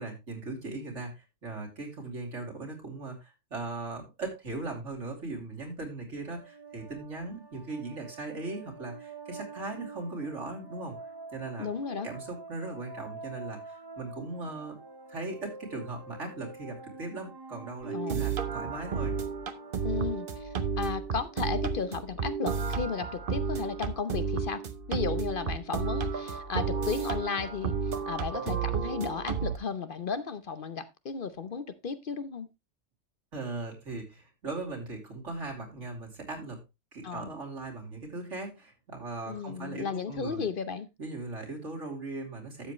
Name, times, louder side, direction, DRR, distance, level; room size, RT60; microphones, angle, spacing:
voice 1, 0.0-11.0 11.3-11.7 12.0-14.8 15.1-19.1 33.3-36.6 36.9-40.4 41.0-42.7, right 3 dB, 80° right, 3.2 m, -39 dB
sound 1, 6.2-21.6, right 4 dB, 20° right, 0.9 m, -47 dB
voice 2, 11.6-12.1 17.9-18.2 19.8-24.6 24.9-27.7 28.1-32.5 37.0-37.3 39.3-40.9, left 5 dB, 50° left, 0.8 m, -34 dB
sound 2, 17.8-29.6, right 5 dB, 50° right, 1.0 m, -32 dB
12.5 x 7.5 x 3.0 m
omnidirectional pair, 1.2 m